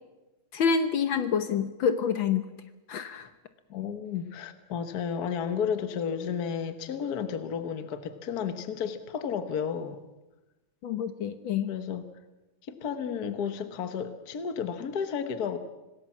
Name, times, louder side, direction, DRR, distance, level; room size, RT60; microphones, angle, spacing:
voice 1, 0.5-2.4 2.9-3.3 10.8-11.7, left 6 dB, 65° left, 10 dB, 1.7 m, -27 dB
voice 2, 3.7-10.0 11.7-12.1 12.7-15.6, left 7 dB, 50° left, 9 dB, 1.7 m, -32 dB
26.5 x 19.0 x 7.3 m, 1.1 s
omnidirectional pair, 2.3 m